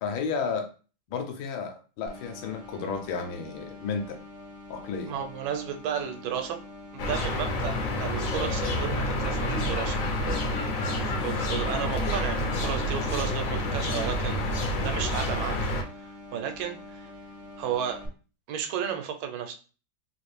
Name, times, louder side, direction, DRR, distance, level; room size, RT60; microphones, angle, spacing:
voice 1, 0.0-0.7 1.1-4.2 4.7-5.1, left 5 dB, 85° left, 5 dB, 1.5 m, -32 dB
sound 1, 2.1-18.1, left 2 dB, 55° right, 0.6 m, -46 dB
voice 2, 5.1-6.6 6.9-7.7 8.0-10.0 10.8-17.1 17.6-18.0 18.5-19.5, right 8 dB, 90° right, 6 dB, 1.4 m, -33 dB
sound 2, 7.0-15.8, left 1 dB, 65° left, 0.8 m, -28 dB
3.6 x 2.5 x 3.2 m, 0.36 s
omnidirectional pair, 2.1 m